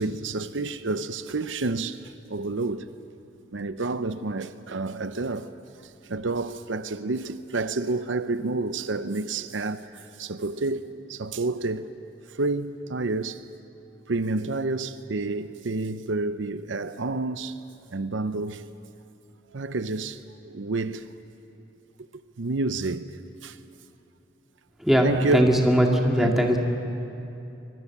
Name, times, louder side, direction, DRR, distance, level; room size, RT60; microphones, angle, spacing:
voice 1, 0.0-2.9 3.5-5.5 5.8-11.9 12.3-13.4 14.1-17.6 17.9-18.6 19.5-21.0 22.4-23.1 23.4-23.6 25.0-25.6 26.2-26.6, right 3 dB, 85° right, 0.7 m, -29 dB
voice 2, 25.3-26.6, equal, ahead, 2.1 m, -20 dB
24.5 x 22.0 x 7.3 m
head